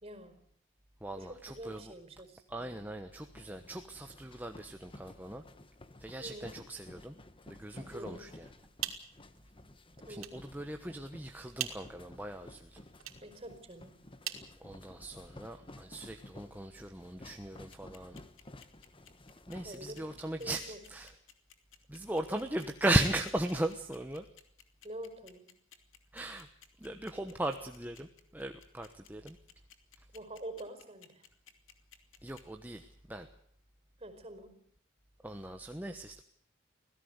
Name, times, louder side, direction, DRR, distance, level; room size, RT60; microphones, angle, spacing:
voice 1, 0.0-0.4 1.1-2.8 6.2-6.5 7.9-8.3 10.0-10.3 13.2-14.0 19.6-20.0 20.4-20.8 22.3-22.5 24.8-25.5 30.1-31.3 34.0-34.5, right 1 dB, 30° right, 9 dB, 4.8 m, -46 dB
voice 2, 1.0-1.9 2.5-5.4 6.0-7.1 7.5-8.5 10.1-12.8 14.6-18.2 19.5-21.1 21.9-24.3 26.1-26.5 26.8-29.4 32.2-33.3 35.2-36.2, right 1 dB, 10° right, 5 dB, 1.1 m, -37 dB
sound 1, 3.1-20.6, left 1 dB, 25° left, 1.3 m, -54 dB
sound 2, 8.5-15.3, right 11 dB, 85° right, 3.0 m, -45 dB
sound 3, 17.7-32.4, left 9 dB, 70° left, 2.9 m, -57 dB
26.0 x 17.0 x 8.1 m, 0.64 s
head